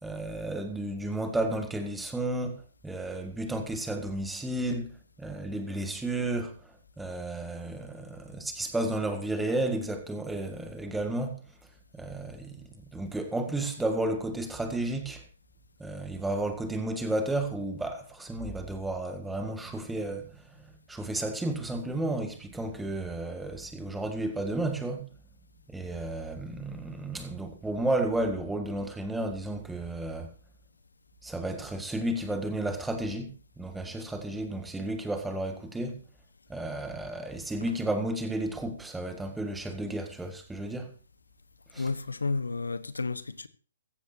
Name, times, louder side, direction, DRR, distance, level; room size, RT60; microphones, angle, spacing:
voice 1, 0.0-11.4 11.9-15.2 15.8-25.1 25.7-30.3 31.2-36.0 36.5-40.9 41.7-41.9, right 1 dB, 5° right, 1.7 m, -32 dB
voice 2, 41.8-43.5, left 3 dB, 90° left, 1.1 m, -31 dB
15.0 x 14.5 x 2.7 m
hypercardioid pair, 140°, 0 cm